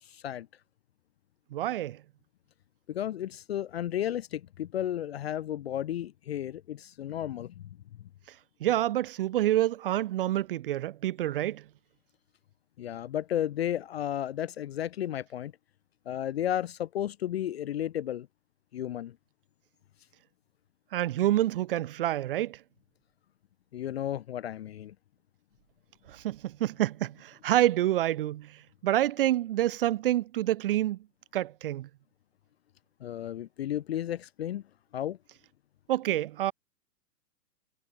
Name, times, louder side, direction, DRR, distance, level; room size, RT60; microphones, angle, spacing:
voice 1, 0.0-0.5 2.9-7.7 8.0-8.1 12.8-15.5 16.1-18.3 18.7-19.2 23.7-24.9 33.0-34.6 34.9-35.2, left 11 dB, 40° left, 0.6 m, -33 dB
voice 2, 1.5-2.0 8.6-11.6 20.9-22.6 26.1-28.6 28.8-31.0 31.3-31.9 35.9-36.5, right 13 dB, 35° right, 0.7 m, -27 dB
hypercardioid pair, 155°, 48 cm